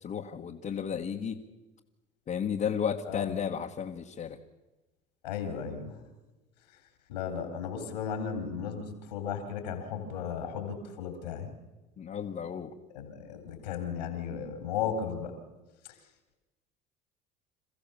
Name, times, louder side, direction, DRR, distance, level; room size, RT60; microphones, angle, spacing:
voice 1, 0.0-1.4 2.3-4.4 12.0-12.7, left 7 dB, 40° left, 0 dB, 1.6 m, -33 dB
voice 2, 3.1-3.4 5.2-6.0 7.1-11.5 12.9-15.3, left 7 dB, 85° left, 6 dB, 3.9 m, -35 dB
28.0 x 15.0 x 7.1 m, 1.1 s
hypercardioid pair, 75°, 21 cm